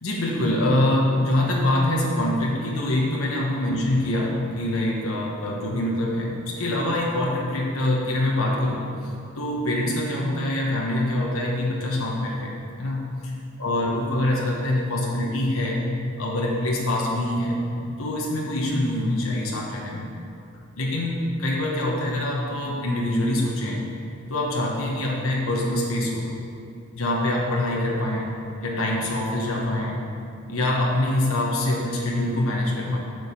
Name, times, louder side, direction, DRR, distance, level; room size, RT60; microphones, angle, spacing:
voice 1, 0.0-8.9 9.4-15.8 16.2-17.6 18.0-20.1 20.8-23.8 24.3-26.3 26.9-28.3 28.6-30.0 30.5-33.0, left 1 dB, 90° left, -2 dB, 1.2 m, -24 dB
8.1 x 5.0 x 7.1 m, 2.5 s
head